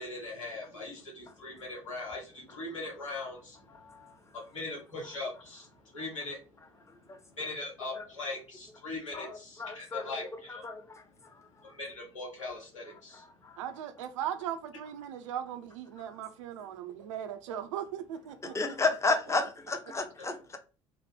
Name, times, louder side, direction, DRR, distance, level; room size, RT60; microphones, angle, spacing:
voice 1, 0.0-3.6 4.3-6.4 7.3-10.7 11.6-13.2 20.2-20.3, left 2 dB, 80° left, 1.0 m, -40 dB
voice 2, 9.1-10.8 18.5-20.6, left 3 dB, 15° left, 0.7 m, -32 dB
voice 3, 13.6-18.8, right 10 dB, 75° right, 0.4 m, -38 dB
2.9 x 2.0 x 3.1 m
figure-of-eight pair, 60°, 16 cm